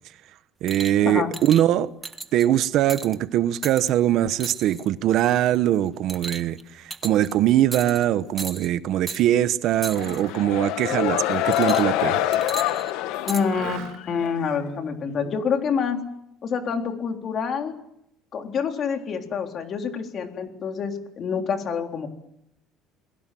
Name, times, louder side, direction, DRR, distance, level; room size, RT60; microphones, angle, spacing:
voice 1, 0.6-1.9 2.3-6.6 7.0-12.2, right 12 dB, 55° right, 1.0 m, -22 dB
sound 1, 0.7-1.0 1.3-1.6 2.0-2.5 2.9-3.1 3.6-3.9 4.4-4.9 5.3-5.6 6.1-6.6 6.9-7.3 7.7-8.0 8.4-8.7 9.1-9.2 9.8-10.2 11.5-12.0 12.3-13.4 14.3-14.4, right 3 dB, 15° right, 1.5 m, -35 dB
Mechanisms, 9.7-10.4 10.9-12.9 13.4-14.3, right 9 dB, 75° right, 5.6 m, -43 dB
sound 2, 9.9-14.4, left 13 dB, 80° left, 1.6 m, -26 dB
voice 2, 13.2-13.8 14.1-16.0 16.4-17.7 18.3-22.1, left 6 dB, 40° left, 3.7 m, -27 dB
29.5 x 21.5 x 7.7 m
cardioid pair, 140°, 0 cm